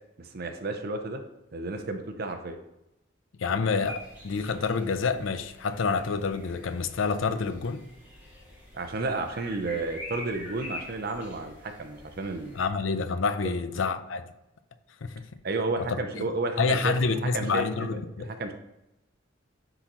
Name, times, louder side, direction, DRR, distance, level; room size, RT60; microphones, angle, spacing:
voice 1, 0.2-1.2 1.5-2.6 8.7-12.6 13.4-13.5 15.4-18.0 18.4-18.5, right 2 dB, 50° right, 0.6 m, -32 dB
voice 2, 3.3-7.8 12.5-14.3 15.0-15.2 15.8-16.3 16.6-18.3, left 4 dB, 75° left, 0.5 m, -28 dB
sound 1, 3.8-12.7, left 1 dB, 10° right, 2.1 m, -45 dB
9.8 x 3.9 x 3.0 m
head